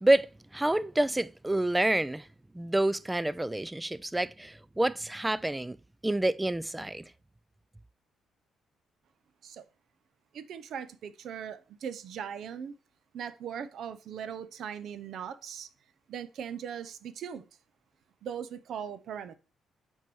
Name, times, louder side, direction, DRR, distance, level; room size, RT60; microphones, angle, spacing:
voice 1, 0.0-2.2 2.5-5.8 6.0-7.0, right 1 dB, 10° right, 0.4 m, -28 dB
voice 2, 10.3-12.7 13.1-15.7 16.1-17.5 18.2-19.4, right 8 dB, 70° right, 0.7 m, -39 dB
6.1 x 4.5 x 6.1 m
cardioid pair, 90°, 0 cm